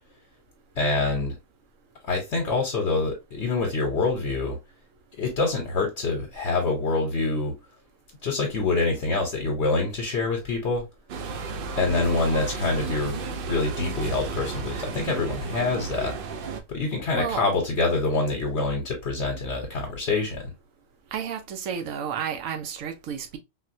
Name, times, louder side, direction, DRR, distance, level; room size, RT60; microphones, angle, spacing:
voice 1, 0.8-1.4 2.1-4.6 5.2-7.6 8.2-10.8 11.7-13.2 13.5-16.2 16.7-20.5, left 3 dB, 60° left, 1.0 m, -26 dB
sound 1, 11.1-16.6, right 4 dB, 65° right, 0.6 m, -33 dB
voice 2, 17.1-17.4 21.1-23.4, right 7 dB, 90° right, 1.1 m, -31 dB
4.0 x 2.1 x 2.5 m
omnidirectional pair, 1.3 m